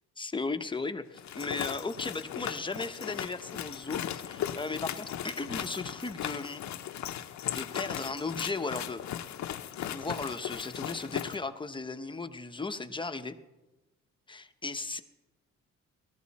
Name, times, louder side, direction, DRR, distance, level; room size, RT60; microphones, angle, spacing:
voice 1, 0.2-6.6 7.5-9.4 9.8-13.3 14.3-15.0, left 3 dB, 15° left, 8 dB, 1.0 m, -36 dB
sound 1, 1.2-11.4, left 10 dB, 65° left, 0.9 m, -37 dB
19.0 x 14.0 x 4.2 m, 1.1 s
cardioid pair, 90°, 30 cm